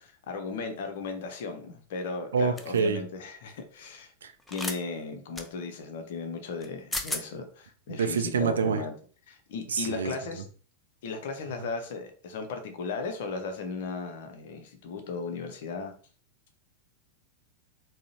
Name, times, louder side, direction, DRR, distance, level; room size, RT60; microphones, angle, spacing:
voice 1, 0.0-4.1 4.5-8.9 9.3-10.4 11.0-15.9, left 4 dB, 55° left, 6 dB, 0.6 m, -36 dB
voice 2, 2.3-3.0 4.2-4.3 7.9-8.8 9.7-10.1, right 6 dB, 65° right, 8 dB, 0.3 m, -26 dB
sound 1, 2.6-2.8 4.5-4.8 5.4-5.5 6.6-6.7 6.9-7.2, left 1 dB, 10° left, 0.4 m, -33 dB
3.6 x 2.0 x 2.7 m, 0.42 s
figure-of-eight pair, 90°, 0 cm